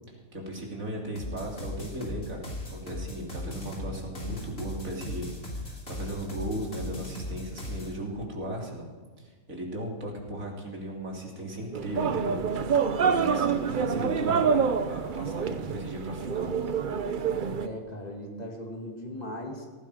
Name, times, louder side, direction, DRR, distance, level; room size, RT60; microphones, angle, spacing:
voice 1, 0.1-8.9 9.2-12.4 13.0-14.6 14.9-16.5, right 1 dB, 70° right, -1 dB, 3.5 m, -36 dB
sound 1, 1.2-7.9, left 1 dB, 45° left, 3.2 m, -37 dB
sound 2, 11.7-17.7, right 6 dB, 45° right, 0.7 m, -27 dB
voice 2, 13.7-14.5 17.6-19.7, equal, 30° left, 1 dB, 2.5 m, -38 dB
18.0 x 15.0 x 4.9 m, 1.5 s
omnidirectional pair, 1.5 m